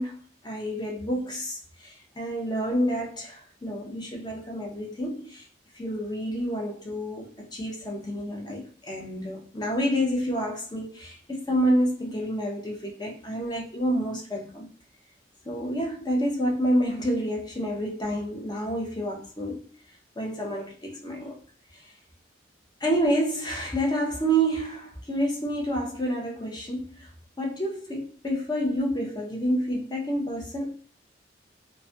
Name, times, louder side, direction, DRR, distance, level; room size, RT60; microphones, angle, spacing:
voice 1, 0.0-5.5 5.7-14.7 15.5-19.7 20.2-21.3 22.8-27.1 27.4-30.7, equal, 25° left, 0.6 m, -28 dB
2.3 x 2.1 x 2.6 m
head